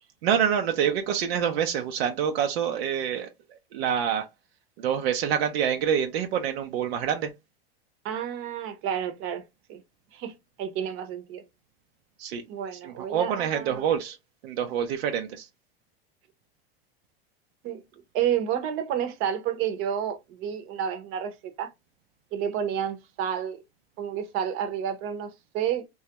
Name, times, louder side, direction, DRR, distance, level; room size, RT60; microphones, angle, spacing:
voice 1, 0.2-3.3 3.7-4.3 4.8-7.3 12.2-12.4 12.8-14.2 14.4-15.5, right 8 dB, 80° right, 0.6 m, -26 dB
voice 2, 8.0-9.4 9.7-9.8 10.1-11.4 12.5-13.9 17.6-17.8 18.1-21.7 22.3-23.6 24.0-25.8, right 9 dB, 45° right, 0.8 m, -30 dB
3.1 x 2.3 x 2.9 m
supercardioid pair, 135°, 31 cm